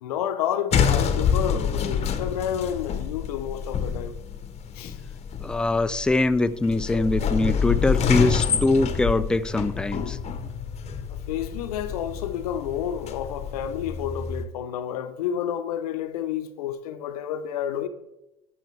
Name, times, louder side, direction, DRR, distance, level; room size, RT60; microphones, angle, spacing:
voice 1, 0.0-4.2 4.7-5.0 11.1-17.9, left 9 dB, 85° left, 0.7 m, -30 dB
sound 1, 0.7-14.4, left 7 dB, 35° left, 0.9 m, -27 dB
voice 2, 5.4-10.2, left 2 dB, 5° left, 0.3 m, -23 dB
14.0 x 5.6 x 3.3 m
hypercardioid pair, 95°, 19 cm